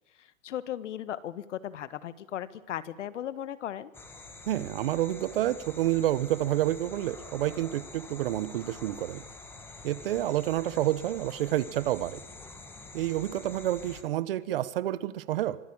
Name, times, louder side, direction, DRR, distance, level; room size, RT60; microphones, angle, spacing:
voice 1, 0.2-3.9, left 11 dB, 65° left, 15 dB, 1.7 m, -37 dB
sound 1, 3.9-14.0, left 3 dB, 5° left, 1.9 m, -47 dB
voice 2, 4.5-9.2 9.8-12.2 12.9-15.6, right 13 dB, 45° right, 17 dB, 1.3 m, -29 dB
25.5 x 17.0 x 8.9 m, 1.0 s
hypercardioid pair, 170°, 39 cm